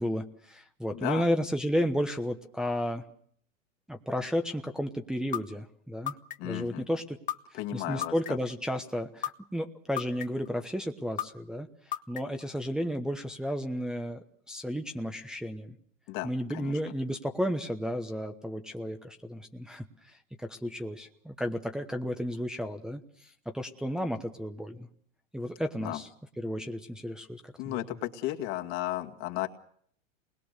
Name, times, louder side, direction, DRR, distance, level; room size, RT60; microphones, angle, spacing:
voice 1, 0.0-3.0 3.9-6.1 6.4-7.2 7.7-15.8 16.2-24.9 25.3-26.1 26.4-27.8, equal, ahead, 3 dB, 1.1 m, -33 dB
voice 2, 0.9-1.3 6.4-6.9 7.5-8.1 16.1-16.7 25.8-26.0 27.6-29.5, left 15 dB, 45° left, 4 dB, 2.2 m, -34 dB
sound 1, 5.3-5.4 6.1-6.6 7.3-7.4 8.0-8.5 9.2-9.3 10.0-10.5 11.2-11.3 11.9-12.4, left 12 dB, 20° left, 0.9 m, -32 dB
27.5 x 21.0 x 6.8 m, 0.63 s
hypercardioid pair, 130°, 38 cm